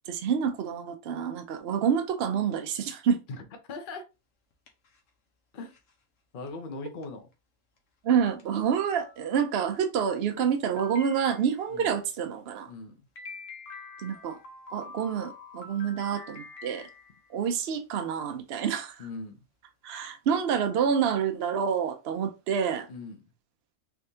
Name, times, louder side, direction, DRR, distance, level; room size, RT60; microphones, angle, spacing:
voice 1, 0.1-3.2 8.0-12.7 14.0-14.4 14.7-16.9 17.3-19.0 19.8-22.9, right 7 dB, 60° right, 0.7 m, -28 dB
voice 2, 3.3-4.0 5.5-5.7 6.3-7.3 11.7-12.0 12.7-12.9 19.0-19.4 22.9-23.2, left 3 dB, 45° left, 0.8 m, -40 dB
sound 1, 4.5-5.1 5.7-5.9 6.5-6.6 7.0-7.1 7.8-7.9 8.4-8.5 8.8-9.6 10.8-11.7 13.2-17.4, left 3 dB, 65° left, 1.2 m, -46 dB
3.6 x 3.3 x 2.7 m
omnidirectional pair, 1.5 m